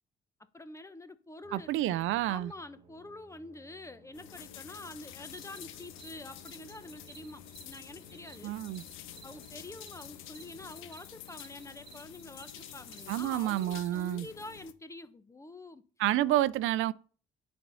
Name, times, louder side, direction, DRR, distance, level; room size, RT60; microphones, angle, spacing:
voice 1, 0.5-8.6 9.2-15.8, left 2 dB, 15° left, 0.8 m, -47 dB
sound 1, 1.4-11.0, right 2 dB, 30° right, 1.4 m, -60 dB
voice 2, 1.5-2.5 8.4-8.8 13.1-14.3 16.0-16.9, right 14 dB, 85° right, 0.4 m, -29 dB
sound 2, 4.1-14.7, left 12 dB, 90° left, 0.7 m, -49 dB
sound 3, 5.2-13.9, right 7 dB, 55° right, 1.7 m, -58 dB
9.4 x 4.4 x 5.5 m
cardioid pair, 90°, 20 cm